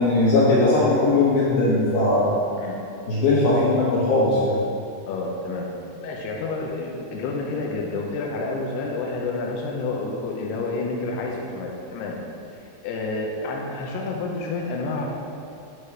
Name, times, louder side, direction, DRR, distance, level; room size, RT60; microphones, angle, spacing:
voice 1, 0.0-2.4 3.1-4.6, left 2 dB, 70° left, -8 dB, 2.4 m, -19 dB
voice 2, 5.1-5.7 6.0-12.2 12.6-15.1, left 3 dB, 85° left, -1 dB, 2.3 m, -29 dB
9.4 x 4.9 x 5.7 m, 2.6 s
omnidirectional pair, 5.7 m